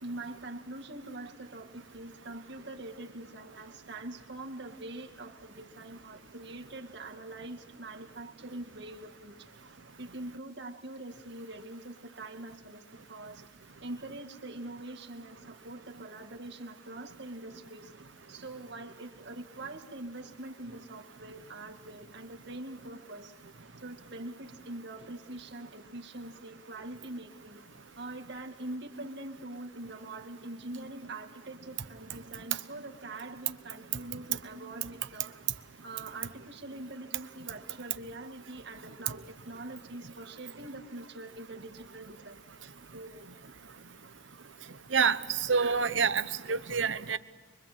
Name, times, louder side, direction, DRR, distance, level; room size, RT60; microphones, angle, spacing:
voice 1, 0.0-9.3 10.0-13.4 13.8-17.9 18.3-23.4 23.8-27.6 28.0-35.3 35.8-42.4 42.9-43.2 45.5-45.8, right 2 dB, 65° right, 3 dB, 2.1 m, -44 dB
voice 2, 44.9-47.2, right 5 dB, 85° right, 12 dB, 1.0 m, -27 dB
24.5 x 24.0 x 7.5 m, 1.4 s
head